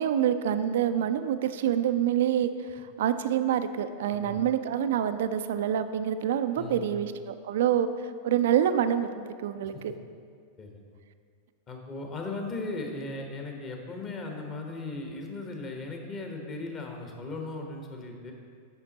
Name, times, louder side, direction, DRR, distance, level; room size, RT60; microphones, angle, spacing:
voice 1, 0.0-2.5 3.0-7.9 8.2-9.9, right 10 dB, 55° right, 11 dB, 0.4 m, -26 dB
voice 2, 4.1-4.4 6.6-7.0 10.6-11.0 11.7-18.3, left 2 dB, 30° left, 2 dB, 1.2 m, -37 dB
9.8 x 5.7 x 4.1 m, 2.1 s
figure-of-eight pair, 90°, 0 cm